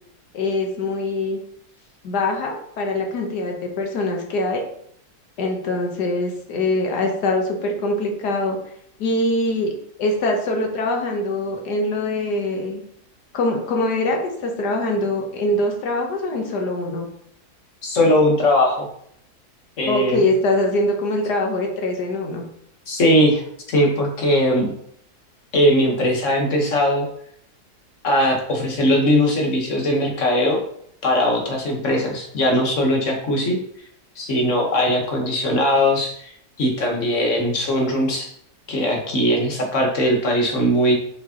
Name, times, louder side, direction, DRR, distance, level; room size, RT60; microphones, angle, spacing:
voice 1, 0.3-1.4 2.0-4.6 5.4-8.6 9.0-9.7 10.0-12.8 13.3-17.1 19.8-22.4, left 2 dB, 85° left, 2 dB, 1.6 m, -23 dB
voice 2, 17.8-18.9 19.8-20.2 22.9-24.7 25.5-27.1 28.0-30.6 31.0-33.6 34.2-36.3 36.6-38.3 38.7-40.9, equal, 50° left, 1 dB, 1.6 m, -19 dB
7.1 x 4.8 x 2.9 m, 0.68 s
omnidirectional pair, 1.7 m